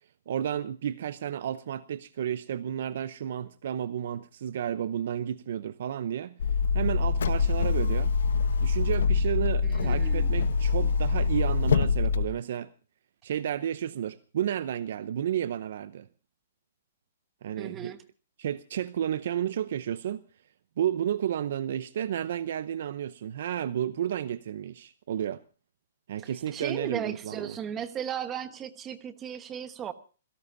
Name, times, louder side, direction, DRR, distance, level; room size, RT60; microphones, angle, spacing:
voice 1, 0.3-6.4 6.7-8.2 8.6-12.7 13.2-16.1 17.4-17.9 18.4-20.2 20.8-25.4 26.1-27.6, right 10 dB, 55° right, 0.7 m, -32 dB
sound 1, 6.4-12.3, left 5 dB, 75° left, 1.0 m, -25 dB
voice 2, 9.6-10.5 17.6-18.0 26.2-29.9, right 9 dB, 15° right, 1.1 m, -36 dB
26.5 x 17.5 x 2.6 m
hypercardioid pair, 165°, 0 cm